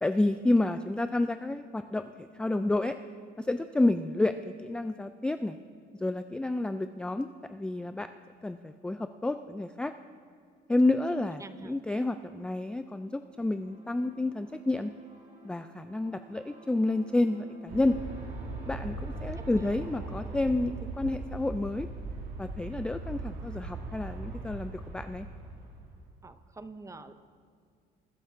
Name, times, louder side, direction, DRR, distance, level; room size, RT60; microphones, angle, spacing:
voice 1, 0.0-3.0 3.4-5.6 6.0-8.1 8.4-9.9 10.7-14.9 15.4-18.0 18.7-21.9 22.4-25.3, left 2 dB, 5° left, 9 dB, 0.3 m, -30 dB
voice 2, 11.1-11.8 19.5-19.7 26.2-27.1, right 3 dB, 20° right, 11 dB, 0.7 m, -47 dB
sound 1, 12.4-19.8, right 3 dB, 40° right, 2.8 m, -55 dB
Aircraft, 17.7-26.1, right 2 dB, 65° right, 2.2 m, -39 dB
20.5 x 9.9 x 3.7 m, 2.2 s
cardioid pair, 110°, 17 cm